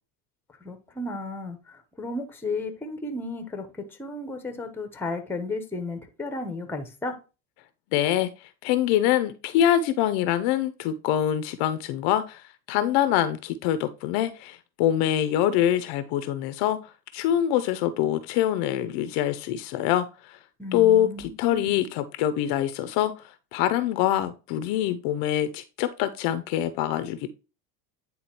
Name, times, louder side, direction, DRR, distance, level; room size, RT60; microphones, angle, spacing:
voice 1, 0.6-3.7 4.0-7.1 20.6-21.8, left 2 dB, 5° left, 0.8 m, -34 dB
voice 2, 7.9-8.3 8.6-16.8 17.1-20.4 20.7-23.1 23.5-27.3, left 11 dB, 50° left, 0.6 m, -24 dB
9.4 x 3.7 x 2.9 m
supercardioid pair, 115°, 49 cm